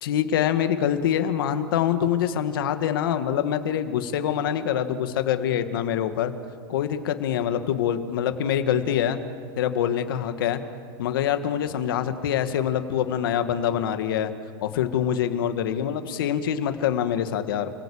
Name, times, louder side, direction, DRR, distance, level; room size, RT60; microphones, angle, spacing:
voice 1, 0.0-6.3 6.7-9.2 9.6-10.6 11.0-14.3 14.6-17.7, left 9 dB, 65° left, 8 dB, 2.0 m, -25 dB
30.0 x 22.5 x 8.8 m, 2.2 s
supercardioid pair, 180°, 12 cm